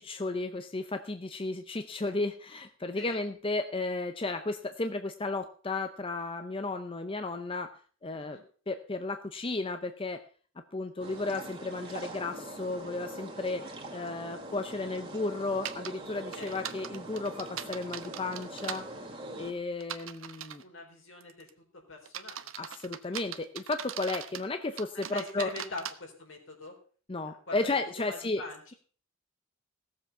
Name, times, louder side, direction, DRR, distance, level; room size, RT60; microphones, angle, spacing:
voice 1, 0.0-8.4 8.7-10.2 10.7-18.9 19.4-20.6 22.6-25.5 27.1-28.4, left 3 dB, 25° left, 8 dB, 0.7 m, -34 dB
sound 1, 11.0-19.5, right 1 dB, 25° right, 2.4 m, -43 dB
sound 2, 15.6-15.9 16.3-18.8 19.8-20.6 21.2-21.5 22.0-24.5 24.8-25.9, right 9 dB, 80° right, 0.9 m, -40 dB
voice 2, 16.1-16.6 20.6-22.5 25.1-26.8 27.3-28.6, left 2 dB, 70° left, 1 dB, 4.2 m, -43 dB
17.0 x 7.4 x 5.6 m, 0.43 s
head